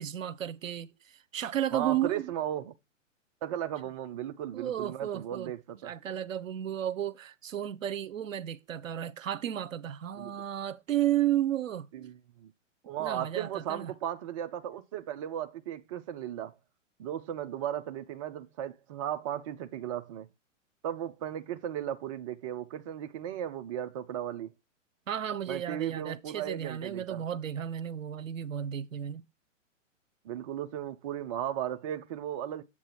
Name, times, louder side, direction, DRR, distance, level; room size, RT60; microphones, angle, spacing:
voice 1, 0.0-2.3 4.5-5.5 5.8-11.9 13.0-13.9 25.1-29.2, right 11 dB, 80° right, 0.7 m, -33 dB
voice 2, 1.7-2.7 3.4-5.9 10.2-10.4 11.9-12.5 12.8-16.5 17.0-20.3 20.8-24.5 25.5-27.2 30.2-32.6, right 10 dB, 25° right, 0.4 m, -36 dB
7.5 x 6.0 x 2.9 m
figure-of-eight pair, 115°, 39 cm